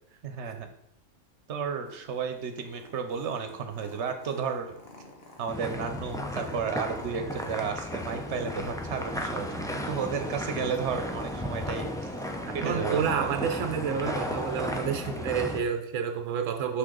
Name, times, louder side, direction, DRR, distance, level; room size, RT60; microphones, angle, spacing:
voice 1, 0.2-0.7 1.5-4.8 5.4-12.1 12.5-13.3, right 6 dB, 65° right, 6 dB, 1.1 m, -33 dB
Purr, 1.9-15.8, left 2 dB, 55° left, 1.2 m, -50 dB
sound 1, 5.5-15.6, left 1 dB, 5° left, 0.4 m, -34 dB
voice 2, 12.6-16.8, right 7 dB, 85° right, 6 dB, 1.0 m, -29 dB
6.3 x 5.6 x 3.9 m, 0.77 s
omnidirectional pair, 1.3 m